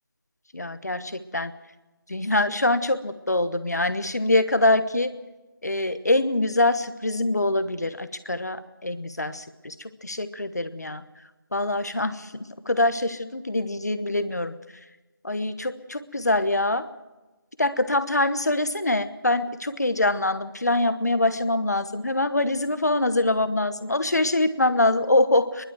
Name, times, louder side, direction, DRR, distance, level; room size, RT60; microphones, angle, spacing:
voice 1, 0.5-1.5 2.1-5.2 5.6-11.0 11.5-14.5 15.2-16.9 17.6-25.6, left 2 dB, 50° left, 11 dB, 1.1 m, -24 dB
24.5 x 11.5 x 9.2 m, 1.1 s
figure-of-eight pair, 180°, 12 cm